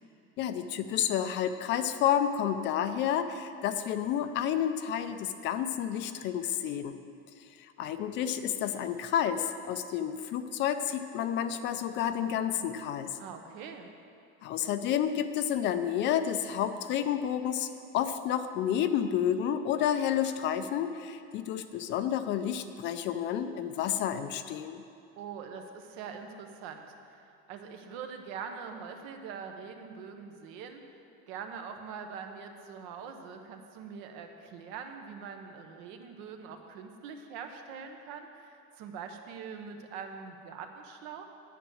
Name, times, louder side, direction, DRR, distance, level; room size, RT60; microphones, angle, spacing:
voice 1, 0.4-7.0 7.8-13.2 14.4-17.7 17.9-24.8, left 9 dB, 40° left, 10 dB, 0.4 m, -30 dB
voice 2, 13.2-13.9 25.2-31.0 31.3-41.3, right 6 dB, 70° right, 5 dB, 1.2 m, -43 dB
9.2 x 9.1 x 6.3 m, 2.5 s
cardioid pair, 170°, 29 cm